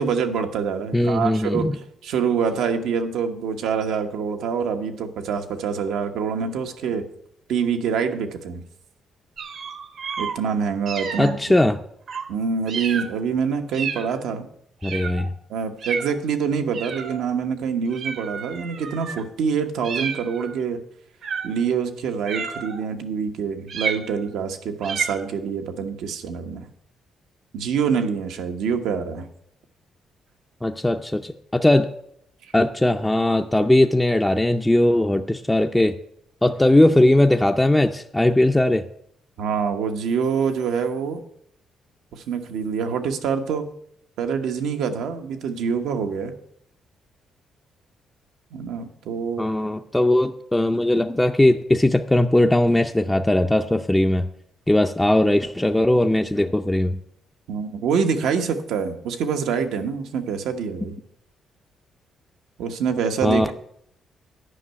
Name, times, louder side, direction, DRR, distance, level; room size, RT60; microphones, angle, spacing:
voice 1, 0.0-7.0 7.5-8.6 10.2-11.6 12.3-14.4 15.5-20.8 21.4-26.7 27.5-29.3 39.4-41.2 42.1-43.7 44.2-46.3 48.5-49.4 57.5-61.0 62.6-63.5, right 6 dB, 85° right, 5 dB, 1.1 m, -25 dB
voice 2, 0.9-1.7 11.2-11.8 14.8-15.3 30.6-31.9 32.5-36.0 36.4-38.8 49.4-54.3 54.7-57.0 63.2-63.5, left 1 dB, 10° left, 4 dB, 0.5 m, -19 dB
sound 1, 9.4-10.4 10.9-11.4 12.1-12.3 12.7-13.1 13.7-14.2 14.8-15.3 15.8-16.2 16.7-17.3 17.9-19.2 19.8-20.5 21.2-21.7 22.3-22.9 23.7-24.3 24.8-25.3, right 6 dB, 60° right, 1.1 m, -31 dB
9.9 x 5.5 x 8.1 m, 0.72 s
cardioid pair, 90°, 0 cm